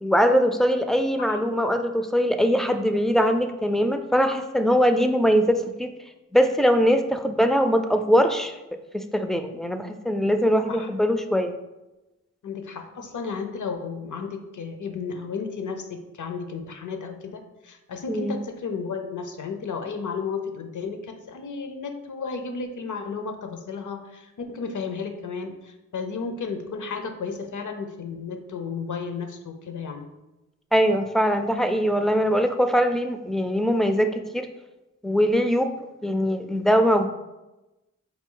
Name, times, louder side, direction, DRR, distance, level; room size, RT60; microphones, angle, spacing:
voice 1, 0.0-5.9 6.3-8.5 8.9-11.6 18.1-18.4 30.7-34.5 35.0-35.7 36.0-37.1, equal, ahead, 7 dB, 0.3 m, -22 dB
voice 2, 12.4-30.1, left 5 dB, 65° left, 6 dB, 0.6 m, -33 dB
4.4 x 2.3 x 3.7 m, 1.0 s
cardioid pair, 40°, 32 cm